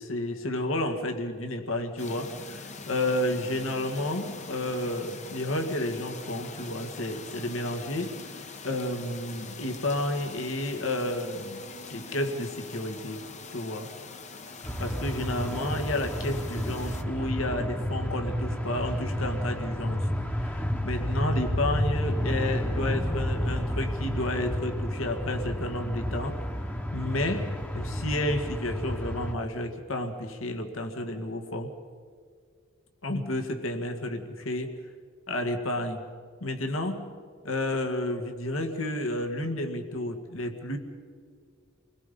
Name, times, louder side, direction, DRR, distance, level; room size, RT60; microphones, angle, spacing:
voice 1, 0.0-11.6 11.9-13.9 14.8-20.0 20.4-26.3 26.9-31.7 33.0-34.7 35.3-36.1 36.4-37.0 37.4-40.8, left 1 dB, 75° left, 4 dB, 2.0 m, -31 dB
sound 1, 2.0-17.0, left 4 dB, 35° left, 1.0 m, -43 dB
sound 2, 14.6-29.3, equal, 10° left, 1.2 m, -31 dB
29.5 x 21.0 x 5.4 m, 2.1 s
head